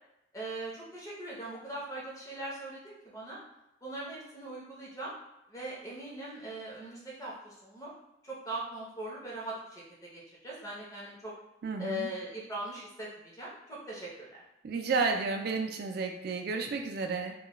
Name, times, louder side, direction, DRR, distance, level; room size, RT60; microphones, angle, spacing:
voice 1, 0.3-3.4 3.8-5.1 5.5-7.9 8.2-9.8 10.1-11.3 11.8-14.4, right 1 dB, 15° left, -6 dB, 0.7 m, -40 dB
voice 2, 11.6-12.1 14.6-17.3, right 4 dB, 55° right, 4 dB, 0.3 m, -31 dB
2.2 x 2.2 x 2.9 m, 0.87 s
head